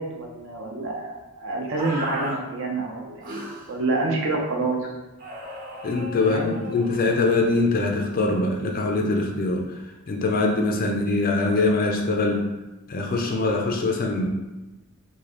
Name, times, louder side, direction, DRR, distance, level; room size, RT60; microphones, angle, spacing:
voice 1, 0.0-4.8 6.2-6.5, right 2 dB, 65° right, -1 dB, 0.7 m, -28 dB
sound 1, 1.7-2.4 3.2-3.7 5.2-7.5, right 1 dB, 45° right, 1.0 m, -35 dB
voice 2, 5.8-9.6 10.1-12.5 12.9-14.3, left 3 dB, 40° left, 2 dB, 0.4 m, -23 dB
3.2 x 2.5 x 3.7 m, 1.1 s
head